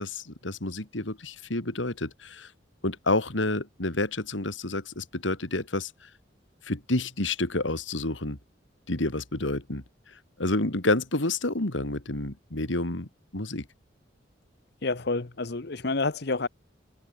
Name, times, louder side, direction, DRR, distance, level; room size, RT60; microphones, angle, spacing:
voice 1, 0.0-2.5 2.8-5.9 6.6-8.4 8.9-9.8 10.4-13.1 13.3-13.6, left 2 dB, 80° left, 2.9 m, -29 dB
voice 2, 14.8-16.5, left 3 dB, 60° left, 1.1 m, -28 dB
head